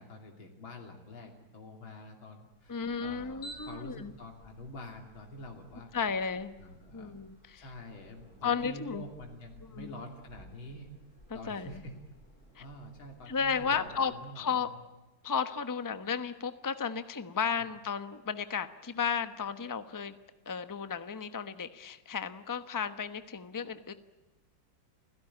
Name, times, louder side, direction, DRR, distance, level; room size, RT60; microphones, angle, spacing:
voice 1, 0.0-5.9 6.6-7.1 7.6-10.9 11.3-11.9 12.6-14.7, left 1 dB, 85° left, 2 dB, 3.7 m, -47 dB
sound 1, 2.5-14.0, equal, 45° left, 7.8 m, -55 dB
voice 2, 2.7-4.1 5.9-6.5 6.9-7.6 8.4-9.0 9.7-9.9 11.3-11.8 12.6-12.7 13.3-14.7 15.2-20.1 20.5-23.9, left 6 dB, 15° left, 11 dB, 0.7 m, -34 dB
29.0 x 16.5 x 9.9 m, 1.1 s
omnidirectional pair, 2.1 m